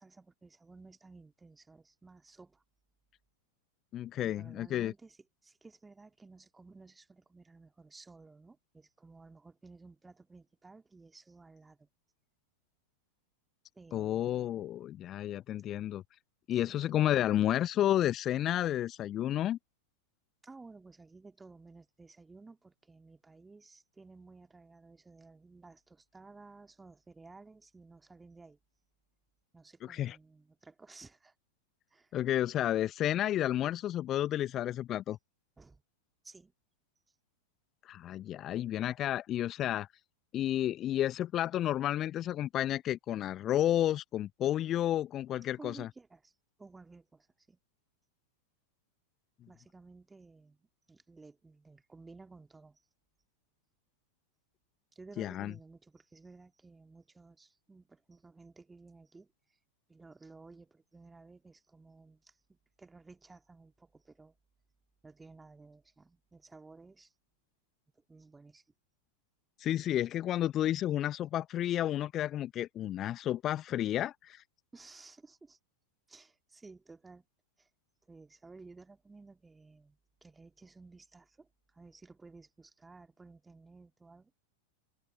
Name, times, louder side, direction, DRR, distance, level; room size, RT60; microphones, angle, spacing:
voice 1, 0.0-2.6 4.2-5.2 5.4-11.9 13.8-14.5 16.5-17.0 20.4-28.6 29.5-31.3 31.9-32.1 35.6-35.8 36.2-36.5 45.6-46.3 46.6-47.6 49.5-52.8 54.9-59.3 59.9-64.3 65.0-67.1 68.1-68.6 74.7-75.6 76.1-77.2 77.6-77.7 78.1-84.4, right 3 dB, 10° right, 2.2 m, -55 dB
voice 2, 3.9-4.9 13.9-16.0 16.5-19.6 29.8-30.2 32.1-35.2 37.8-39.9 40.3-45.9 55.2-55.5 69.6-74.4, left 12 dB, 30° left, 1.0 m, -31 dB
figure-of-eight pair, 90°, 0 cm